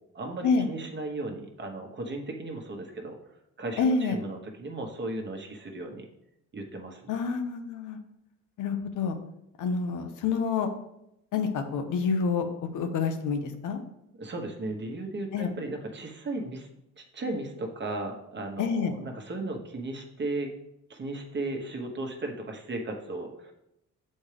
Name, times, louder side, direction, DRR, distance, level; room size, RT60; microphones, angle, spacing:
voice 1, 0.1-3.2 3.6-6.1 6.5-7.1 14.2-16.7 17.0-20.5 20.9-23.5, right 2 dB, 40° right, 3 dB, 1.1 m, -36 dB
voice 2, 3.8-4.2 7.1-8.0 8.6-9.2 9.6-10.7 11.3-12.5 12.7-13.8 15.3-15.5 18.6-18.9, left 5 dB, 80° left, 7 dB, 0.8 m, -27 dB
7.2 x 4.3 x 3.4 m, 0.82 s
cardioid pair, 90°, 30 cm